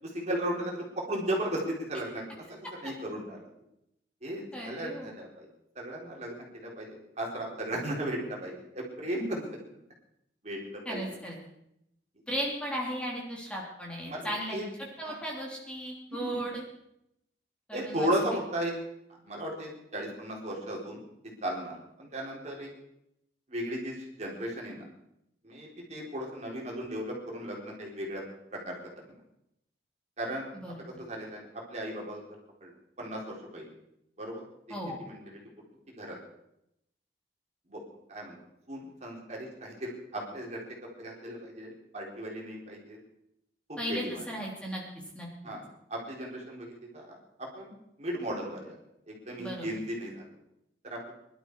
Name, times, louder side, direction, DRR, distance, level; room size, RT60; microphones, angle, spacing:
voice 1, 0.0-2.2 2.5-3.5 4.2-5.5 5.8-9.6 10.4-11.0 14.1-14.6 15.0-15.1 16.1-16.4 17.7-18.8 19.2-21.0 21.4-22.7 23.5-24.8 25.4-28.2 28.5-28.8 30.2-30.5 31.0-32.2 32.6-32.7 33.0-33.7 34.2-35.2 36.0-36.2 37.7-37.8 38.1-38.4 38.7-43.0 43.7-44.2 45.4-45.6 45.9-47.7 48.0-48.7 49.1-50.3 50.8-51.1, right 1 dB, 40° right, -2 dB, 4.1 m, -36 dB
voice 2, 4.5-5.1 10.8-11.4 12.3-14.6 15.0-16.6 17.7-18.1 30.5-30.8 34.7-34.9 43.8-44.8 45.1-45.3 49.4-49.7, right 1 dB, 5° left, -3 dB, 3.2 m, -36 dB
23.0 x 12.0 x 4.8 m, 0.81 s
head